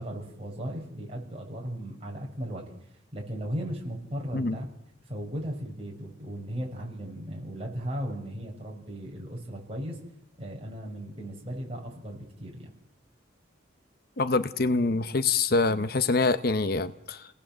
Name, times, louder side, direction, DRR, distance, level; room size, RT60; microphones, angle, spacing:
voice 1, 0.0-2.6 3.1-4.7 5.1-10.0 10.4-12.7, equal, 30° right, -1 dB, 6.4 m, -36 dB
voice 2, 14.2-17.3, left 3 dB, 50° left, 12 dB, 0.8 m, -25 dB
29.0 x 18.5 x 7.7 m, 0.80 s
head